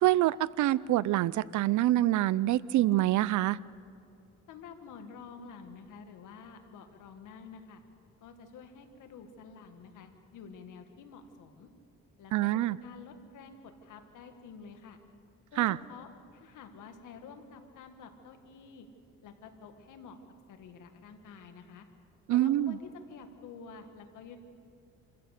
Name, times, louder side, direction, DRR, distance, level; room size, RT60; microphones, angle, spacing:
voice 1, 0.0-3.6 12.3-12.8 15.6-15.8 22.3-22.8, right 15 dB, 75° right, 20 dB, 0.5 m, -26 dB
voice 2, 4.5-7.8 8.2-11.7 12.2-15.0 15.5-18.9 19.2-20.2 20.5-21.9 22.3-24.4, left 5 dB, 85° left, 6 dB, 2.0 m, -49 dB
27.0 x 15.5 x 6.7 m, 2.5 s
cardioid pair, 90°, 30 cm